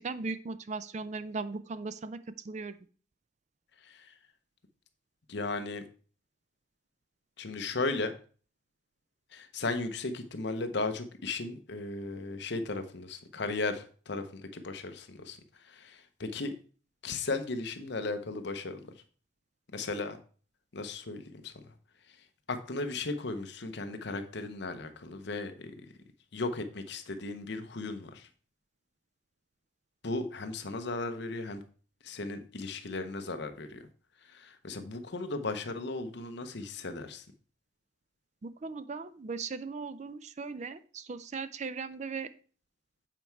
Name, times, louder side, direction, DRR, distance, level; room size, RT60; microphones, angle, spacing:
voice 1, 0.0-2.2 2.4-2.8 38.4-42.3, right 4 dB, 35° right, 13 dB, 0.4 m, -38 dB
voice 2, 3.8-4.1 5.3-5.8 7.4-8.1 9.3-16.5 17.0-18.9 19.7-20.2 20.7-21.5 22.1-22.2 22.5-25.7 26.3-28.3 30.0-31.6 32.0-33.9 34.2-37.3, left 3 dB, 60° left, 8 dB, 0.8 m, -36 dB
7.7 x 4.6 x 4.5 m, 0.41 s
head